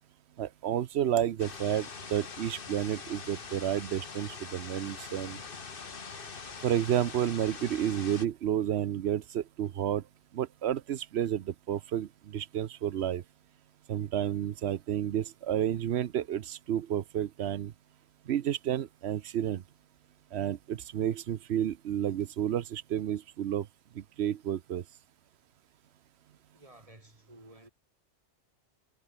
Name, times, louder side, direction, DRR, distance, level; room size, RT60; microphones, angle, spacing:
voice 1, 0.4-5.4 6.6-10.0 10.3-13.2 13.9-17.7 18.3-19.6 20.3-23.7 24.2-24.8, right 10 dB, 70° right, 0.9 m, -31 dB
sound 1, 1.4-8.3, left 5 dB, 50° left, 1.6 m, -43 dB
voice 2, 26.5-27.7, right 1 dB, 30° right, 4.3 m, -54 dB
omnidirectional pair, 1.2 m